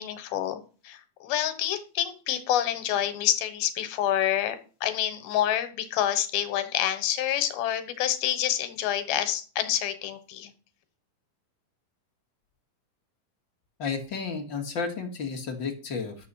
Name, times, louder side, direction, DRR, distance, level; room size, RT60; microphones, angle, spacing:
voice 1, 0.0-10.5, left 11 dB, 85° left, 10 dB, 3.0 m, -28 dB
voice 2, 13.8-16.2, left 5 dB, 45° left, 3 dB, 1.6 m, -32 dB
11.5 x 7.5 x 5.5 m, 0.38 s
omnidirectional pair, 4.3 m